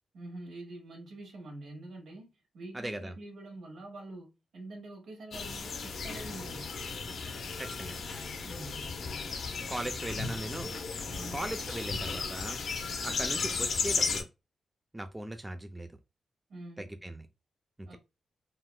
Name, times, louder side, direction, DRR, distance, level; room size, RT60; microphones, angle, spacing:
voice 1, 0.1-2.3 2.5-6.7 8.4-8.9 11.1-11.4 16.5-16.9 17.9-18.0, right 2 dB, 80° right, 1.4 m, -45 dB
voice 2, 2.7-3.1 7.6-8.0 9.7-10.7 11.3-12.6 13.0-14.3 14.9-15.9 16.8-17.3 17.9-18.0, right 1 dB, 10° right, 0.3 m, -39 dB
sound 1, 5.3-14.2, left 4 dB, 65° left, 0.6 m, -35 dB
3.6 x 2.3 x 2.2 m
cardioid pair, 120°, 0 cm